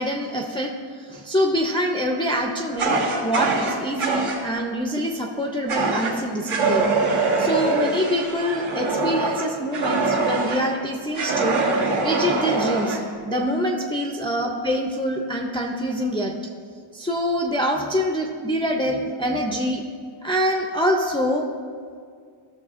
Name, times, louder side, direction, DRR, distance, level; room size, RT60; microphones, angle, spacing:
voice 1, 0.0-6.9 7.4-11.6 12.0-16.4 16.9-19.8 20.2-21.5, equal, 10° left, -1 dB, 0.3 m, -25 dB
Fire, 2.8-4.4 5.7-6.1 6.5-10.6 11.1-13.0, right 3 dB, 80° right, 1.6 m, -23 dB
14.0 x 6.5 x 2.4 m, 2.1 s
wide cardioid pair, 175°, 49 cm